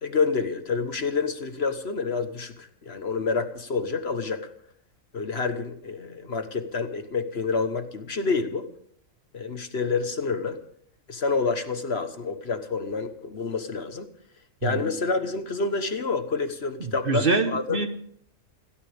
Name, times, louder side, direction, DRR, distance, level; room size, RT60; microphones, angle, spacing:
voice 1, 0.0-4.5 5.1-8.7 9.3-10.6 11.1-14.1 14.6-17.8, left 4 dB, 50° left, 8 dB, 1.4 m, -28 dB
voice 2, 16.8-17.9, right 4 dB, 45° right, 7 dB, 1.4 m, -25 dB
29.0 x 13.5 x 3.5 m, 0.67 s
omnidirectional pair, 1.4 m